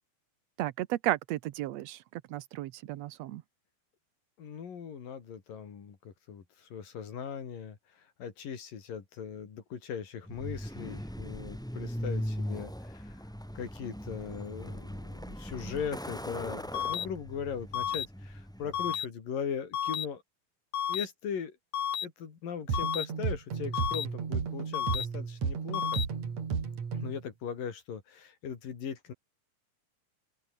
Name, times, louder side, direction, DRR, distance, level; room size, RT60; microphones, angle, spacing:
voice 1, 0.6-2.0 2.3-3.4, right 15 dB, 80° right, 1.5 m, -33 dB
voice 2, 4.4-20.2 20.9-21.6 22.0-26.0 26.9-29.1, left 7 dB, 70° left, 4.9 m, -39 dB
Truck, 10.3-19.0, equal, ahead, 4.1 m, -39 dB
sound 1, 16.7-17.1 17.7-18.1 18.7-19.1 19.7-20.1 20.7-21.1 21.7-22.1 22.7-23.1 23.7-24.1 24.7-25.1 25.7-26.1, left 9 dB, 90° left, 4.2 m, -31 dB
sound 2, 22.7-27.2, right 6 dB, 50° right, 4.4 m, -33 dB
open air
omnidirectional pair, 4.0 m